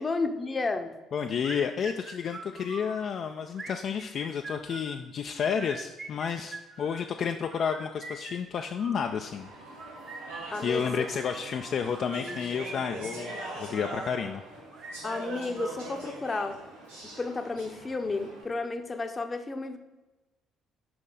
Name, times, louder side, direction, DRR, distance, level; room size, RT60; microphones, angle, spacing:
voice 1, 0.0-1.0 10.5-11.1 15.0-16.6 17.2-19.8, left 3 dB, 25° left, 7 dB, 0.7 m, -32 dB
voice 2, 1.1-9.5 10.6-14.4, left 7 dB, 50° left, 5 dB, 0.3 m, -31 dB
sound 1, 1.4-3.0 3.5-5.0 5.5-7.0 7.5-9.1 9.7-11.1 11.8-14.1 14.7-16.2, right 2 dB, 35° right, 1.1 m, -43 dB
Speech / Chatter, 9.0-18.4, right 2 dB, 80° right, 1.5 m, -42 dB
6.0 x 5.2 x 3.8 m, 1.1 s
figure-of-eight pair, 50°, 0 cm